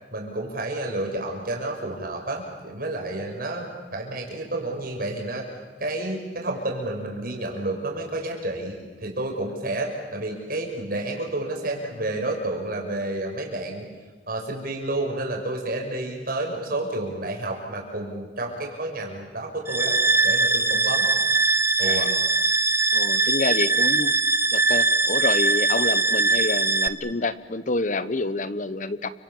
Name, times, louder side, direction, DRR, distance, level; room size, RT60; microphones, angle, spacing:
voice 1, 0.1-5.5 5.8-13.9 14.3-20.0 20.2-21.1 21.8-22.1, right 2 dB, 50° right, 1 dB, 6.2 m, -30 dB
sound 1, 19.7-26.9, right 3 dB, 15° right, 0.8 m, -21 dB
voice 2, 21.8-22.2 22.9-24.1 24.5-29.1, left 2 dB, 45° left, 14 dB, 1.0 m, -28 dB
30.0 x 26.0 x 7.3 m, 1.4 s
head